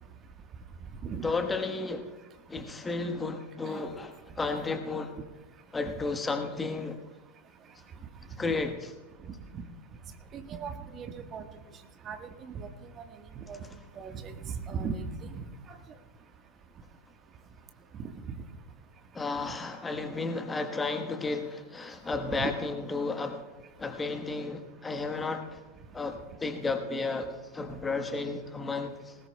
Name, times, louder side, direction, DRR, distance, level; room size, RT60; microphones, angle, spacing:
voice 1, 1.2-2.1 2.5-5.1 5.7-7.0 8.4-8.9 19.1-23.5 23.8-25.6 25.9-29.1, left 3 dB, 15° left, 7 dB, 1.2 m, -33 dB
voice 2, 10.3-11.4 12.0-12.7 13.4-13.6 14.0-15.4 18.0-18.1 22.3-22.5, right 6 dB, 25° right, 7 dB, 1.3 m, -37 dB
20.5 x 19.5 x 2.2 m, 1.3 s
figure-of-eight pair, 90°, 0 cm